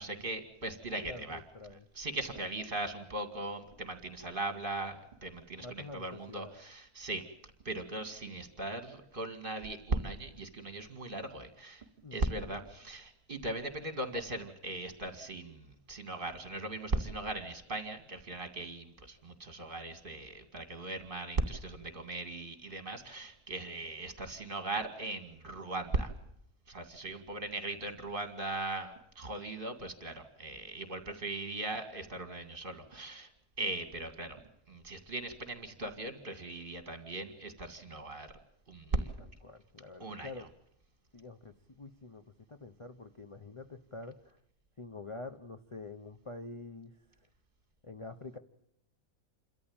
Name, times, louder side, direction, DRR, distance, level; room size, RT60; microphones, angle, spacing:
voice 1, 0.0-1.4 1.9-7.2 7.6-11.9 12.1-26.1 26.7-33.3 33.6-34.4 34.7-38.3 38.7-39.1 40.0-40.3, right 2 dB, 35° right, 8 dB, 2.3 m, -38 dB
voice 2, 1.1-1.9 2.3-2.4 5.6-6.5 12.0-12.7 38.9-40.5 41.1-44.4 44.8-47.0 47.8-48.4, left 3 dB, 25° left, 7 dB, 0.8 m, -47 dB
28.0 x 13.5 x 8.8 m, 0.75 s
omnidirectional pair, 1.5 m